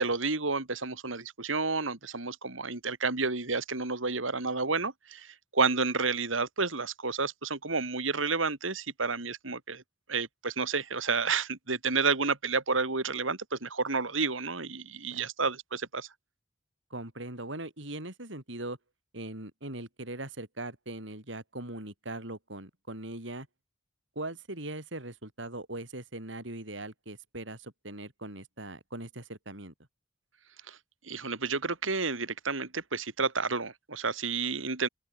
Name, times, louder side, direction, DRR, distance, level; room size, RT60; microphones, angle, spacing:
voice 1, 0.0-9.8 10.1-16.1 30.7-30.8 31.0-34.9, right 4 dB, 85° right, 3.2 m, -30 dB
voice 2, 16.9-18.8 19.1-23.5 24.2-29.7, right 2 dB, 70° right, 5.4 m, -40 dB
open air
head